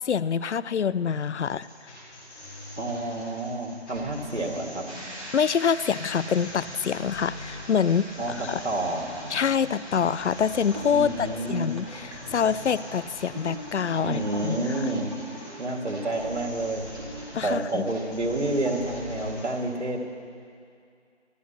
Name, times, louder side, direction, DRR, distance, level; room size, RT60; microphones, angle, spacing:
voice 1, 0.0-1.7 5.3-8.1 8.4-8.6 9.3-14.6 17.3-17.9, left 7 dB, 80° left, 18 dB, 0.5 m, -26 dB
sound 1, 1.5-19.5, left 1 dB, 5° left, 1.8 m, -43 dB
voice 2, 2.8-4.9 8.2-9.1 10.9-11.7 14.0-15.1 15.6-16.8 17.4-20.1, right 2 dB, 85° right, 1 dB, 2.2 m, -29 dB
sound 2, 4.9-17.6 18.0-18.3 18.6-19.0, right 1 dB, 30° right, 2.5 m, -42 dB
sound 3, 6.4-14.4, left 1 dB, 10° right, 1.1 m, -49 dB
26.0 x 12.0 x 2.9 m, 2.4 s
figure-of-eight pair, 165°, 34 cm